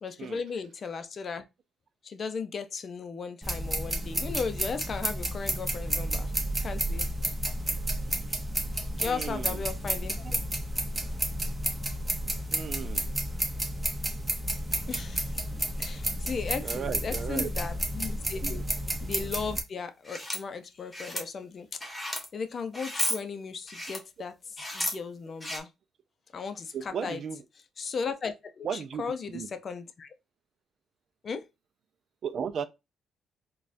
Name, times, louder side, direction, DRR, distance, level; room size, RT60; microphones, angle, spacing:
voice 1, 0.0-1.4 2.0-6.3 6.6-7.1 8.9-10.4 14.9-15.3 15.8-18.6 19.0-21.8 22.3-25.7 26.3-27.2 27.8-30.1 31.2-31.5, left 5 dB, 45° left, 0.5 m, -36 dB
sound 1, 3.4-19.6, right 1 dB, 15° right, 0.8 m, -31 dB
voice 2, 9.0-9.6 12.5-13.1 16.6-17.5 18.4-18.5 26.7-27.4 28.6-29.0 29.3-29.5 32.2-32.7, right 7 dB, 60° right, 0.4 m, -35 dB
sound 2, 20.0-20.4 20.9-21.2 21.8-22.3 22.7-23.2 23.7-24.0 24.6-24.9 25.4-25.6, left 1 dB, 15° left, 1.2 m, -33 dB
4.1 x 2.3 x 2.6 m
cardioid pair, 90°, 0 cm